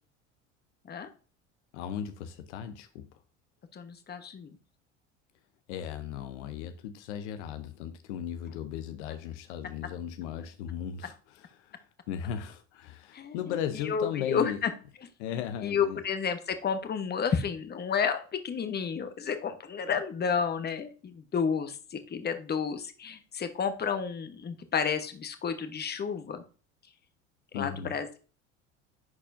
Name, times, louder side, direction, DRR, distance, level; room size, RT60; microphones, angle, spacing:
voice 1, 1.7-3.1 5.7-14.6 15.2-16.0 27.5-27.9, left 9 dB, 70° left, 0.7 m, -37 dB
voice 2, 3.7-4.5 13.1-13.6 13.8-14.7 15.3-26.4 27.5-28.2, left 6 dB, 30° left, 1.0 m, -31 dB
10.5 x 4.2 x 2.5 m
hypercardioid pair, 75°, 36 cm